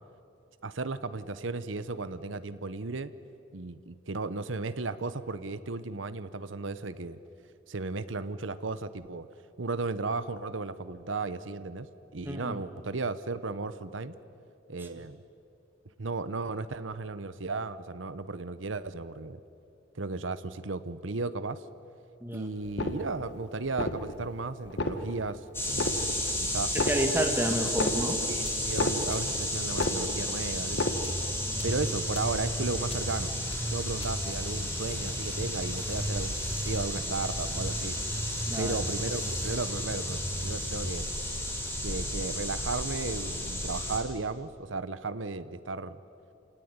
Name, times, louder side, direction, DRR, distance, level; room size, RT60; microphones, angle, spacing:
voice 1, 0.6-3.1 3.5-7.2 7.7-9.3 9.6-11.9 12.1-14.1 14.7-15.2 16.0-19.4 20.0-21.6 22.3-25.4 25.7-26.0 26.4-26.8 27.5-27.6 28.3-31.0 31.6-33.3 33.7-38.0 38.6-41.1 41.8-46.0, right 3 dB, 85° right, 13 dB, 0.9 m, -35 dB
voice 2, 12.2-12.6 14.8-14.9 22.2-22.5 26.7-28.2 31.5-31.7 38.5-38.8, right 1 dB, 10° right, 3 dB, 1.8 m, -30 dB
sound 1, 22.6-23.4 23.7-24.3 24.6-25.4 25.7-26.4 26.6-29.4 29.7-30.4 30.6-31.4 31.7-31.8, left 2 dB, 60° left, 1.5 m, -32 dB
sound 2, 25.5-44.0, equal, 10° left, 4.2 m, -32 dB
sound 3, 28.4-28.7 29.1-29.4 29.8-30.0 30.4-30.6 31.0-31.2 31.6-31.8 32.1-32.4 32.9-33.1 33.5-33.6 34.0-34.2, left 2 dB, 30° left, 2.4 m, -44 dB
28.0 x 18.0 x 9.5 m, 2.6 s
head